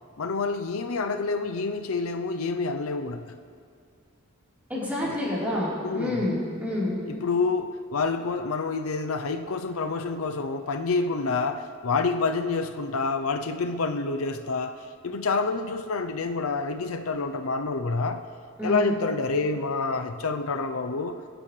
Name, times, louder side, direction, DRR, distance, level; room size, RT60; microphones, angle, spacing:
voice 1, 0.2-3.2 5.0-5.1 5.8-6.3 7.1-14.8 15.0-18.2 18.6-21.2, left 4 dB, 80° left, 7 dB, 0.6 m, -28 dB
voice 2, 4.7-5.7 5.9-6.9 18.6-18.8, left 1 dB, 10° right, -8 dB, 3.9 m, -28 dB
23.5 x 10.0 x 3.3 m, 2.3 s
head